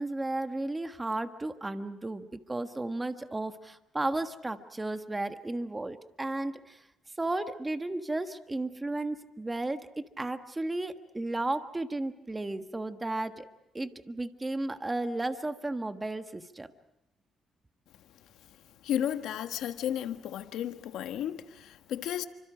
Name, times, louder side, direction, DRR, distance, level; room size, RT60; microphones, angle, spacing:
voice 1, 0.0-6.8 7.2-13.5 13.7-16.7, right 2 dB, 15° right, 8 dB, 1.5 m, -34 dB
voice 2, 18.8-22.2, left 10 dB, 85° left, 8 dB, 1.4 m, -33 dB
30.0 x 25.5 x 5.0 m, 0.88 s
cardioid pair, 90°, 0 cm